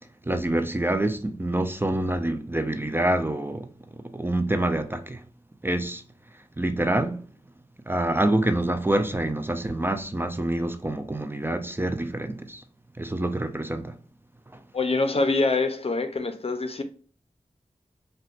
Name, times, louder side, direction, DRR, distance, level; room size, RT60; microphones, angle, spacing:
voice 1, 0.2-5.3 5.6-6.0 6.6-7.3 7.9-12.6 13.0-14.0 14.5-14.6, right 1 dB, 15° right, 0.4 m, -26 dB
voice 2, 14.7-16.8, left 3 dB, 50° left, 0.6 m, -25 dB
3.8 x 2.2 x 2.4 m
cardioid pair, 40°, 13 cm